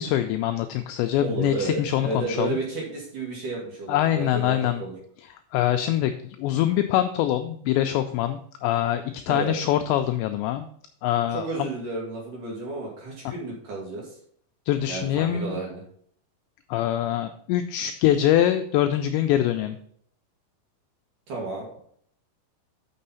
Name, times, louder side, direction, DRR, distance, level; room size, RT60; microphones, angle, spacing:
voice 1, 0.0-2.6 3.9-4.8 5.5-10.7 11.0-11.7 14.7-15.6 16.7-19.8, left 12 dB, 90° left, 7 dB, 2.5 m, -24 dB
voice 2, 1.2-4.9 9.3-9.5 11.3-14.1 14.9-15.8 21.3-21.7, right 3 dB, 50° right, -3 dB, 2.9 m, -32 dB
6.7 x 6.4 x 5.5 m, 0.64 s
omnidirectional pair, 5.6 m